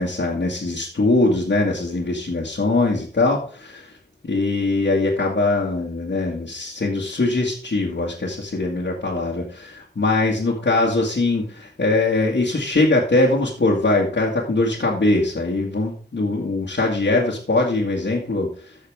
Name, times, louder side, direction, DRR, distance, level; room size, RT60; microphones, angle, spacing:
voice 1, 0.0-3.9 4.2-18.5, left 2 dB, 90° left, -4 dB, 2.0 m, -21 dB
13.5 x 6.5 x 3.6 m, 0.40 s
wide cardioid pair, 60°, 18 cm